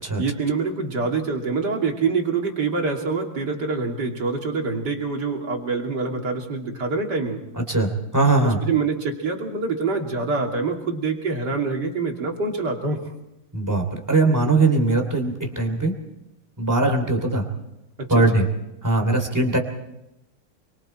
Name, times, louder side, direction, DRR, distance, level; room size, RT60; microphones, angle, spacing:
voice 1, 0.2-7.4 8.4-13.0 18.0-18.5, right 4 dB, 55° right, 1 dB, 3.4 m, -25 dB
voice 2, 7.6-8.6 13.5-15.9 16.6-17.4 18.1-18.5 18.8-19.6, right 2 dB, 10° right, 4 dB, 3.0 m, -20 dB
27.0 x 24.0 x 4.5 m, 0.89 s
omnidirectional pair, 2.1 m